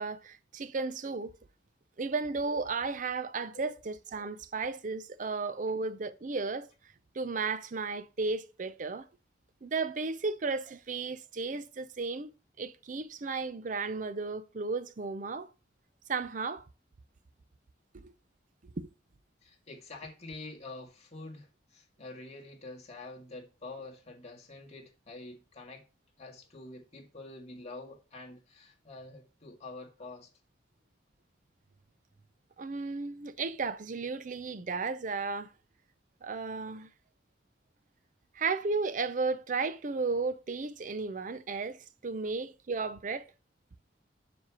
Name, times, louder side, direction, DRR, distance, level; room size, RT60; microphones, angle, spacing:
voice 1, 0.0-1.3 2.0-6.7 7.1-9.1 9.6-12.3 12.6-15.5 16.1-16.6 17.9-18.1 18.8-18.9 32.6-35.5 36.2-36.9 38.3-43.2, right 4 dB, 45° right, 0.5 m, -34 dB
voice 2, 19.4-25.8 26.2-30.3, left 2 dB, 35° left, 2.0 m, -47 dB
7.4 x 6.3 x 2.9 m
head